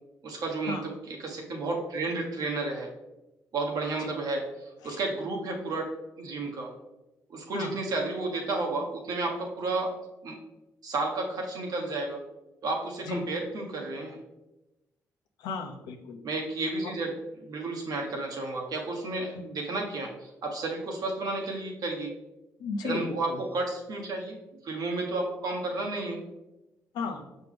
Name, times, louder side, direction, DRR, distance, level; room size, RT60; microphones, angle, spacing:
voice 1, 0.2-0.8 1.2-2.9 3.5-5.9 6.2-6.7 7.3-9.9 10.2-10.4 10.8-12.2 12.6-14.2 16.2-17.1 17.4-22.1 22.8-24.4 24.6-26.2, right 2 dB, 70° right, 0 dB, 1.3 m, -32 dB
voice 2, 15.4-16.2 19.3-19.4 22.6-23.0 23.3-23.4 26.9-27.2, left 4 dB, 85° left, 4 dB, 0.7 m, -34 dB
6.1 x 4.5 x 3.4 m, 0.99 s
supercardioid pair, 60°, 7 cm